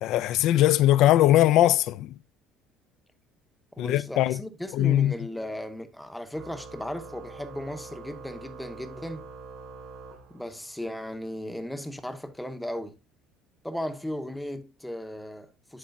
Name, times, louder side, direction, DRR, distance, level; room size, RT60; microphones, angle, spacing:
voice 1, 0.0-2.1 3.8-4.4 4.7-5.1, left 13 dB, 60° left, 0.4 m, -20 dB
voice 2, 3.8-9.2 10.3-13.0 13.6-15.8, left 1 dB, 5° left, 0.8 m, -36 dB
Organ, 6.3-10.9, right 4 dB, 60° right, 3.3 m, -44 dB
11.0 x 4.4 x 2.6 m
cardioid pair, 155°, 0 cm